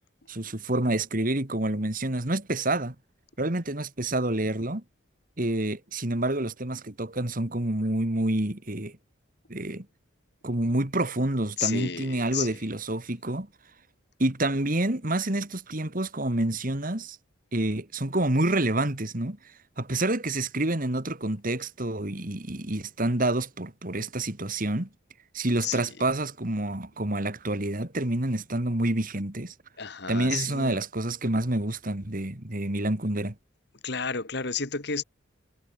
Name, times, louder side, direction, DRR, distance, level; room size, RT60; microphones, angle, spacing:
voice 1, 0.3-2.9 3.4-4.8 5.4-9.0 9.5-9.9 10.4-13.5 14.2-17.2 17.5-19.4 19.8-24.9 25.3-29.5 30.1-33.3, right 1 dB, 45° right, 2.3 m, -28 dB
voice 2, 11.6-12.6 25.6-25.9 29.8-30.8 33.8-35.0, left 6 dB, 55° left, 2.3 m, -31 dB
head